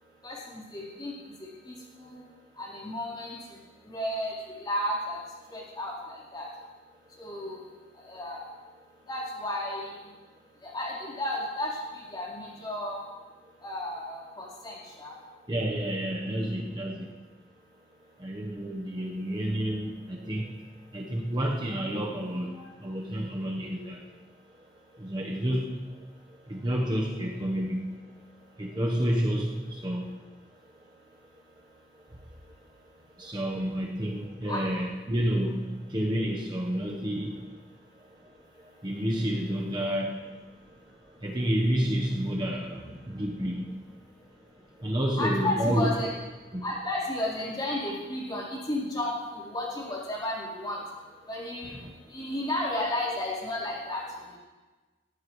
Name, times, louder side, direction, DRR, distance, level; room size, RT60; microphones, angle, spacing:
voice 1, 0.2-1.1 1.4-2.2 2.6-3.4 3.8-5.2 5.5-6.5 7.2-7.7 7.9-8.4 9.1-10.0 10.6-13.0 13.6-15.1 34.4-34.6 45.2-46.1 46.6-50.8 51.3-51.8 52.1-54.0 54.3-54.4, left 1 dB, 25° left, -6 dB, 3.9 m, -33 dB
voice 2, 15.5-17.1 18.2-20.7 20.9-24.0 25.0-25.8 26.5-28.0 28.6-30.2 33.2-37.4 38.8-40.2 41.2-43.8 44.8-45.9 46.5-46.6 51.6-51.9, equal, 25° right, -1 dB, 1.0 m, -30 dB
18.0 x 16.0 x 3.2 m, 1.3 s
head